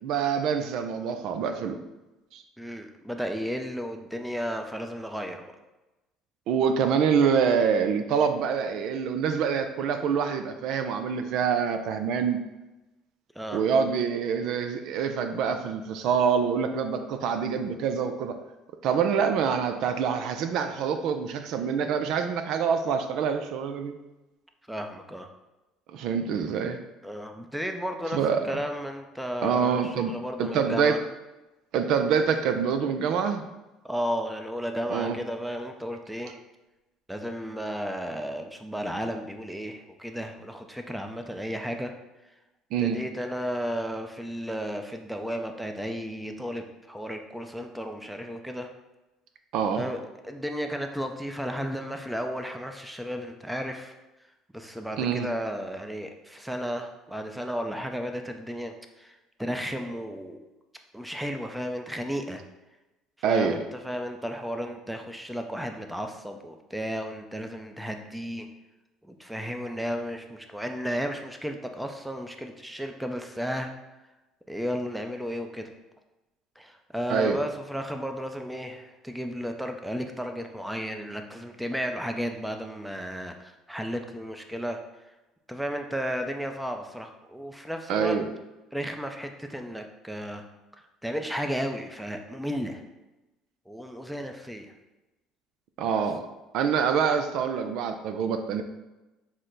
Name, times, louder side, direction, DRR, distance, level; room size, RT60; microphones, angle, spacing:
voice 1, 0.0-1.8 2.3-2.4 6.5-12.4 13.5-18.4 18.8-23.9 25.9-26.8 28.1-28.6 29.4-30.9 31.7-33.4 34.9-35.2 42.7-43.0 49.5-49.9 55.0-55.3 63.2-63.6 77.1-77.4 87.9-88.2 95.8-96.3 96.5-98.6, right 6 dB, 70° right, 7 dB, 0.4 m, -26 dB
voice 2, 2.6-5.5 13.3-13.6 24.7-25.3 27.0-31.0 33.8-36.4 37.1-41.9 42.2-42.3 42.8-48.7 49.7-53.9 54.5-60.4 60.9-62.4 63.2-68.5 69.0-73.7 74.5-75.7 76.6-84.8 85.5-88.2 88.7-90.4 91.0-92.8 93.7-94.7 95.9-96.0, equal, 5° right, 5 dB, 0.5 m, -33 dB
6.2 x 2.1 x 3.9 m, 1.0 s
supercardioid pair, 85°, 0 cm